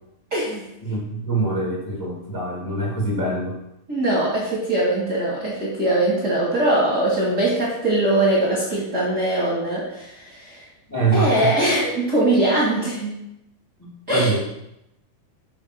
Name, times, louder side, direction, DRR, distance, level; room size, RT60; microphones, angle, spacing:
voice 1, 0.3-0.6 3.9-10.6 11.1-13.1 14.1-14.3, right 1 dB, 35° right, -6 dB, 1.9 m, -21 dB
voice 2, 0.8-3.5 10.9-11.5 13.8-14.4, right 3 dB, 10° left, -3 dB, 1.4 m, -24 dB
7.7 x 5.7 x 6.1 m, 0.83 s
omnidirectional pair, 4.5 m